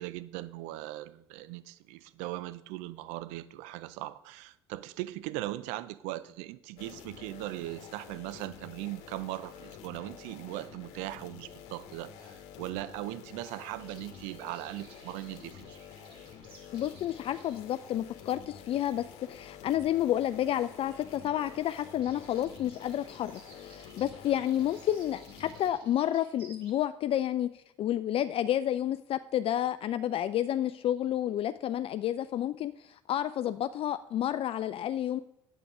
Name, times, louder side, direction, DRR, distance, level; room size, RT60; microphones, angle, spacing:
voice 1, 0.0-15.8, right 16 dB, 70° right, 0.5 m, -39 dB
sound 1, 6.8-25.7, left 8 dB, 65° left, 1.2 m, -49 dB
sound 2, 13.8-26.7, right 3 dB, 40° right, 3.6 m, -59 dB
voice 2, 16.7-35.2, left 11 dB, 45° left, 0.4 m, -30 dB
9.1 x 8.0 x 4.8 m
hypercardioid pair, 60°, 13 cm